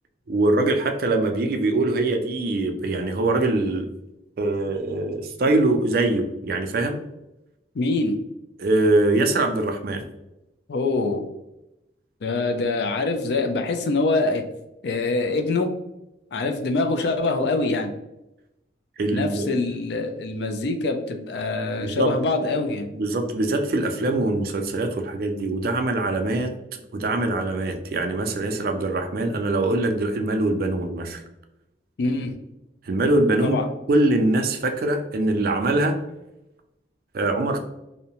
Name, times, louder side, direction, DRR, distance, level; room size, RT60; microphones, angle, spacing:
voice 1, 0.3-3.9 4.4-7.0 8.6-10.0 19.0-19.5 21.8-22.1 22.9-31.2 32.8-33.6 33.9-36.0 37.1-37.6, right 2 dB, 50° right, 5 dB, 0.3 m, -23 dB
voice 2, 7.7-8.2 10.7-11.3 12.2-14.4 14.8-15.7 16.3-17.9 19.1-22.9 32.0-32.4 33.4-33.7, left 3 dB, 65° left, 5 dB, 0.4 m, -24 dB
2.7 x 2.0 x 2.8 m, 0.91 s
head